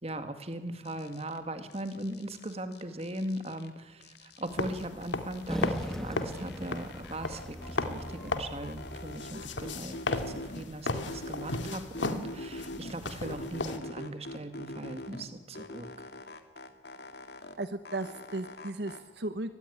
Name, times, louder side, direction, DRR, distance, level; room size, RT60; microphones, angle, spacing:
voice 1, 0.0-16.1, right 1 dB, 35° right, 9 dB, 2.1 m, -39 dB
sound 1, 0.8-1.4 1.7-3.7 4.0-6.0 6.3-8.3 8.6-10.6 10.9-12.9 13.2-15.2 15.5-17.6 17.8-19.0, left 1 dB, 60° left, 2.3 m, -44 dB
sound 2, 4.5-13.8, left 2 dB, 80° left, 2.3 m, -36 dB
sound 3, 5.5-10.0, equal, ahead, 1.2 m, -40 dB
voice 2, 17.6-19.6, right 2 dB, 65° right, 10 dB, 1.2 m, -36 dB
24.5 x 19.0 x 9.7 m, 1.2 s
head